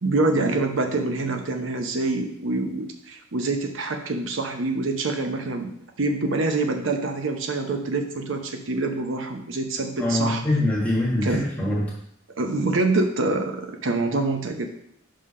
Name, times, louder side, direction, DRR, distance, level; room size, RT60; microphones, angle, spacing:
voice 1, 0.0-10.4 11.2-11.4 12.4-14.7, right 2 dB, 80° right, 4 dB, 0.8 m, -26 dB
voice 2, 10.0-11.9, left 1 dB, 5° left, -5 dB, 1.6 m, -23 dB
5.6 x 3.4 x 5.5 m, 0.72 s
head